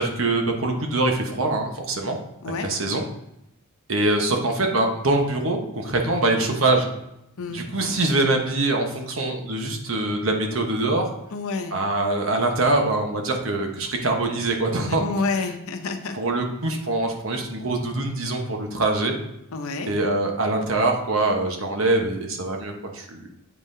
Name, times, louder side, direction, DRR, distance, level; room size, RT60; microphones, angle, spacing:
voice 1, 0.0-2.2 2.5-3.0 3.9-6.9 7.5-11.0 11.7-15.1 16.1-19.1 19.8-23.3, right 2 dB, 70° right, 2 dB, 1.1 m, -23 dB
voice 2, 11.3-11.7 14.9-16.2 19.5-19.9, left 3 dB, 90° left, 7 dB, 0.7 m, -28 dB
8.2 x 5.5 x 2.7 m, 0.82 s
head